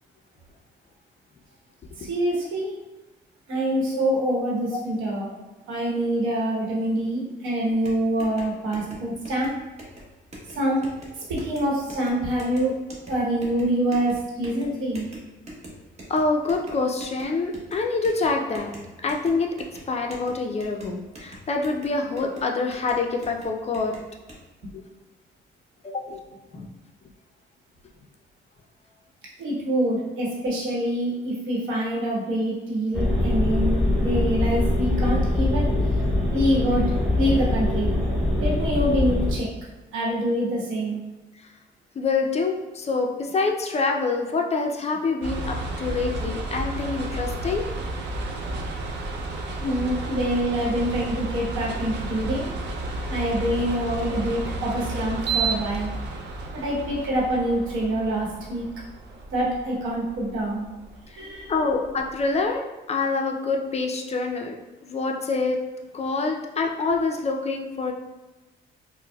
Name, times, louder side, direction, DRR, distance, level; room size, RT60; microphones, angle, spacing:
voice 1, 2.0-2.7 3.5-5.3 5.7-9.5 10.5-10.8 11.2-12.7 13.1-15.1 29.4-35.7 36.3-37.9 38.4-39.5 39.9-41.0 49.6-52.5 53.1-55.9 56.5-58.7 59.3-60.6 61.1-61.5, right 1 dB, 85° right, -4 dB, 1.0 m, -25 dB
sound 1, 7.7-24.4, equal, 35° right, 0.9 m, -45 dB
voice 2, 16.1-18.7 19.0-19.5 19.9-23.9 24.7-24.8 25.8-26.2 26.5-26.7 42.0-47.7 61.5-62.6 62.9-64.6 64.8-65.6 65.9-67.9, left 3 dB, 35° left, 2 dB, 0.4 m, -26 dB
sound 2, 32.9-39.3, left 1 dB, ahead, 0.8 m, -23 dB
sound 3, 45.2-62.4, right 2 dB, 60° right, 0.5 m, -32 dB
4.4 x 2.0 x 2.2 m, 1.1 s
cardioid pair, 90°, 20 cm